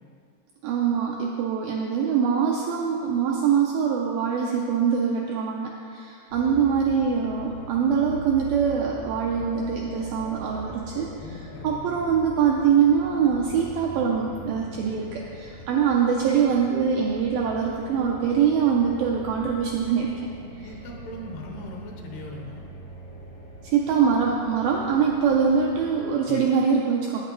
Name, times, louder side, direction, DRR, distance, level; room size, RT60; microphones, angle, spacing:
voice 1, 0.6-11.1 11.6-20.1 20.6-20.7 23.6-27.2, right 7 dB, 85° right, -1 dB, 2.0 m, -23 dB
sound 1, 6.3-26.1, right 1 dB, 60° left, 1.0 m, -42 dB
voice 2, 11.2-12.0 20.6-22.6 26.3-26.4, left 2 dB, 85° left, 0 dB, 2.9 m, -39 dB
8.9 x 8.5 x 3.1 m, 2.4 s
omnidirectional pair, 4.7 m